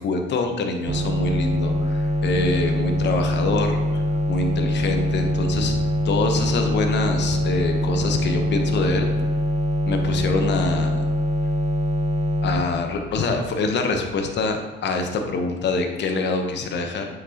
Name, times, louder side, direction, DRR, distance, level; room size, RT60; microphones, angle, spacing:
voice 1, 0.0-4.0 4.3-5.8 6.0-9.1 9.9-11.0 12.4-17.1, left 3 dB, 60° left, 4 dB, 0.9 m, -25 dB
sound 1, 0.9-12.6, left 1 dB, 35° right, 0.7 m, -23 dB
8.1 x 5.9 x 2.9 m, 1.2 s
cardioid pair, 90°, 20 cm